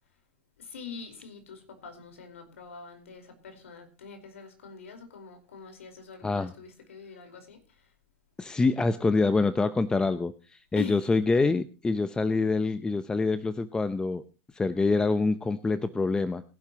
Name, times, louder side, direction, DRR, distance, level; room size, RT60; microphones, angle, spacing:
voice 1, 0.6-7.6 10.7-11.0, left 6 dB, 85° left, 6 dB, 4.7 m, -44 dB
voice 2, 8.4-14.2 14.5-16.4, left 3 dB, 10° left, 12 dB, 0.8 m, -26 dB
20.5 x 11.5 x 3.0 m, 0.34 s
hypercardioid pair, 115°, 7 cm